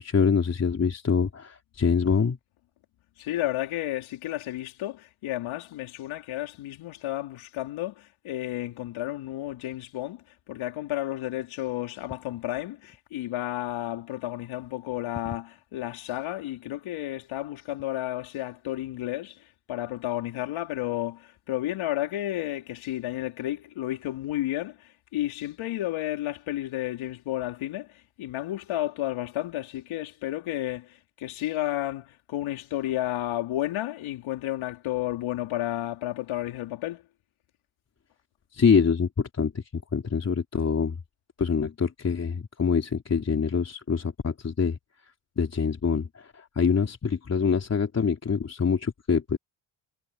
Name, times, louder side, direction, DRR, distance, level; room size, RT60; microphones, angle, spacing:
voice 1, 0.0-2.4 38.5-39.6 39.9-41.0 41.4-44.8 45.4-49.4, left 6 dB, 30° left, 3.7 m, -25 dB
voice 2, 3.2-19.4 19.7-37.0, left 14 dB, 75° left, 4.5 m, -32 dB
cardioid pair, 100°, 48 cm